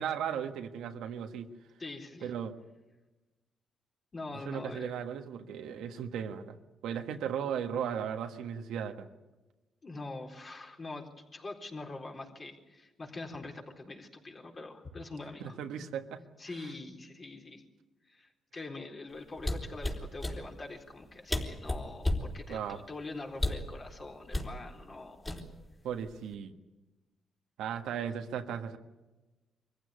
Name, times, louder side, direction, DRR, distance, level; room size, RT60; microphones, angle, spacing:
voice 1, 0.0-1.5 2.2-2.5 4.4-6.6 6.8-9.1 15.4-16.2 22.5-22.8 25.8-26.5 27.6-28.8, right 8 dB, 90° right, 6 dB, 1.5 m, -36 dB
voice 2, 1.8-2.3 4.1-4.9 9.8-15.6 16.4-17.6 18.0-25.4, left 3 dB, 35° left, 2 dB, 4.1 m, -44 dB
sound 1, 19.4-20.4 21.0-21.1 21.3-22.3 23.3-23.7 24.3-24.5 25.3-25.7 26.1-26.3, left 1 dB, 20° left, 3.9 m, -32 dB
24.0 x 15.5 x 9.6 m, 1.1 s
cardioid pair, 90°, 0 cm